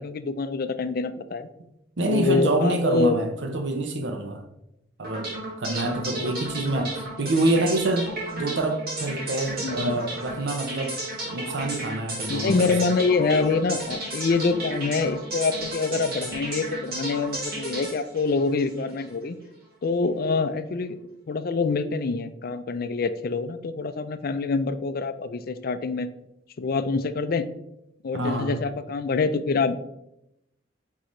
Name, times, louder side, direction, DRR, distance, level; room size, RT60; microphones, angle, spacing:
voice 1, 0.0-1.5 2.1-3.2 5.8-6.4 9.6-10.0 12.3-19.3 19.8-21.0 21.3-26.1 26.6-27.5 28.0-29.8, left 4 dB, 55° left, 11 dB, 0.4 m, -25 dB
voice 2, 2.0-4.4 5.0-11.0 11.3-12.8 28.1-28.6, right 1 dB, 70° right, 5 dB, 0.7 m, -26 dB
sound 1, 5.0-19.1, right 1 dB, 55° right, 2.0 m, -34 dB
9.3 x 3.8 x 3.1 m, 0.84 s
head